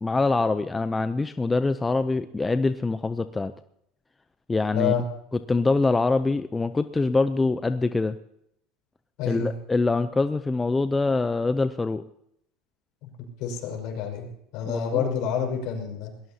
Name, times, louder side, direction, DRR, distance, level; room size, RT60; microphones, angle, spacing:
voice 1, 0.0-3.5 4.5-4.9 5.3-8.2 9.3-12.0 14.6-15.1, left 3 dB, 15° left, 11 dB, 0.6 m, -24 dB
voice 2, 4.7-5.0 9.2-9.5 13.4-14.3 14.5-16.1, left 7 dB, 65° left, 2 dB, 5.3 m, -28 dB
22.0 x 18.5 x 2.9 m, 0.76 s
supercardioid pair, 105°, 0 cm